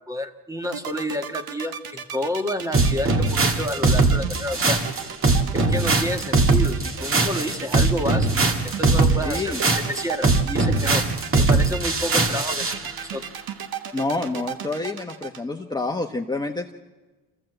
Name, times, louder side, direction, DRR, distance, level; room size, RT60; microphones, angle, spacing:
voice 1, 0.0-4.8 5.5-9.5 9.9-11.0 11.4-12.8 13.1-13.2, left 1 dB, 10° right, 7 dB, 1.5 m, -30 dB
sound 1, 0.6-15.4, right 8 dB, 65° right, 1.5 m, -34 dB
sound 2, 2.7-12.8, right 3 dB, 35° right, 2.0 m, -21 dB
voice 2, 9.2-9.6 13.9-16.7, left 3 dB, 10° left, 1 dB, 1.1 m, -28 dB
25.5 x 15.0 x 7.9 m, 1.2 s
cardioid pair, 95°, 39 cm